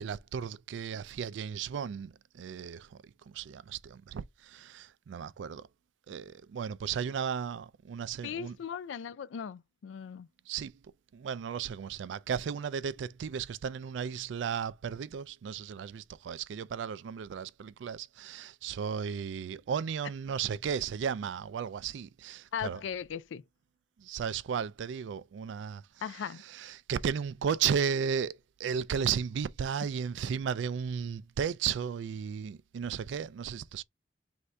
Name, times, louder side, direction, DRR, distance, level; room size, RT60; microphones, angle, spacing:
voice 1, 0.0-5.7 6.1-8.6 10.5-10.7 11.1-22.8 24.0-25.8 26.4-33.8, right 7 dB, 80° right, 0.3 m, -34 dB
voice 2, 8.2-10.3 22.5-23.4 26.0-26.4, left 7 dB, 90° left, 0.3 m, -38 dB
3.2 x 2.7 x 4.5 m
head